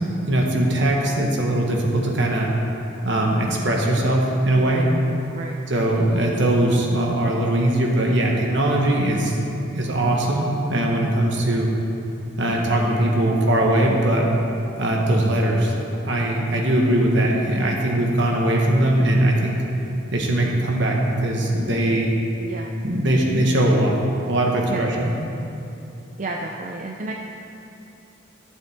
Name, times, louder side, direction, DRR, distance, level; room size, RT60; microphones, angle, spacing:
voice 1, 0.3-2.5 3.0-4.8 5.7-9.4 9.7-11.7 12.4-14.3 14.8-15.7 16.0-19.6 20.1-22.1 22.8-23.9 24.3-25.1, right 1 dB, 60° right, -1 dB, 1.4 m, -20 dB
voice 2, 4.6-4.9 5.3-5.6 22.4-22.7 24.7-25.1 26.2-27.1, right 2 dB, 40° right, 0 dB, 0.5 m, -31 dB
14.5 x 7.3 x 3.6 m, 2.8 s
head